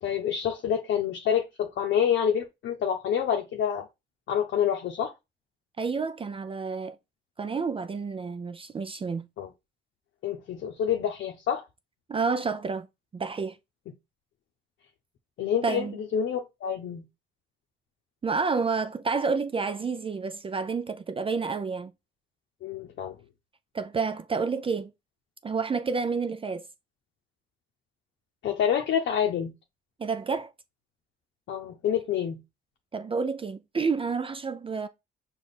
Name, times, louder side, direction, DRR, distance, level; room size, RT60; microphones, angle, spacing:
voice 1, 0.0-3.9 4.3-5.1 9.4-9.5 10.2-11.6 15.4-15.9 16.1-17.0 22.6-23.1 28.4-29.5 31.5-32.4, left 8 dB, 70° left, 0.7 m, -27 dB
voice 2, 5.8-7.0 7.4-9.3 12.1-12.9 13.1-13.6 15.6-16.0 18.2-21.9 23.7-24.9 25.4-26.6 30.0-30.5 32.9-34.9, right 4 dB, 25° right, 0.4 m, -29 dB
5.1 x 2.4 x 4.0 m
cardioid pair, 90°, 20 cm